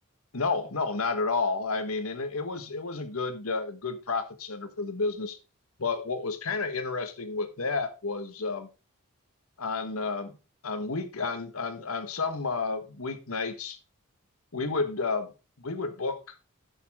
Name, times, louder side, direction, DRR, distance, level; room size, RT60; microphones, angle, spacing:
voice 1, 0.3-5.4 5.8-8.7 9.6-10.4 10.6-13.8 14.5-15.3 15.6-16.2, left 4 dB, 85° left, 1.4 m, -31 dB
10.5 x 7.2 x 3.6 m
head